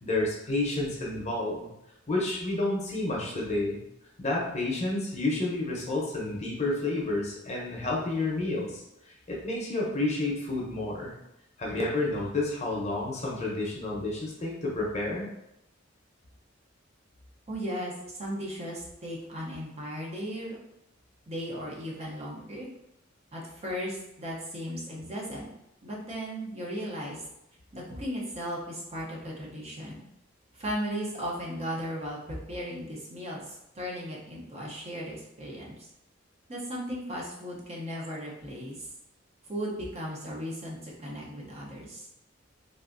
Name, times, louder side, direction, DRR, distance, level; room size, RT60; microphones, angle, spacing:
voice 1, 0.0-1.7 2.1-3.8 4.2-8.8 9.3-11.1 11.6-15.3, left 2 dB, 35° left, -3 dB, 0.7 m, -30 dB
voice 2, 17.5-20.5 21.3-22.7 23.3-25.5 25.8-27.2 27.7-30.1 30.6-35.9 36.5-38.9 39.5-42.1, equal, 35° right, -4 dB, 0.7 m, -36 dB
3.4 x 2.5 x 2.5 m, 0.81 s
head